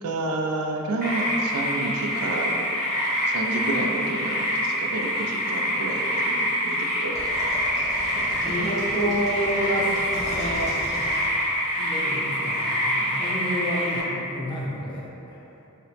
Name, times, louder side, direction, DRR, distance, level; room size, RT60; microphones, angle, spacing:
voice 1, 0.0-2.5 3.2-7.1 8.1-8.7, right 2 dB, 85° right, 1 dB, 0.4 m, -30 dB
sound 1, 1.0-14.0, equal, 40° right, 1.0 m, -26 dB
sound 2, 7.1-11.9, equal, 15° right, 0.8 m, -38 dB
voice 2, 8.3-10.0 10.3-10.8 11.8-15.4, equal, 20° left, -7 dB, 0.6 m, -29 dB
2.9 x 2.8 x 3.2 m, 2.9 s
head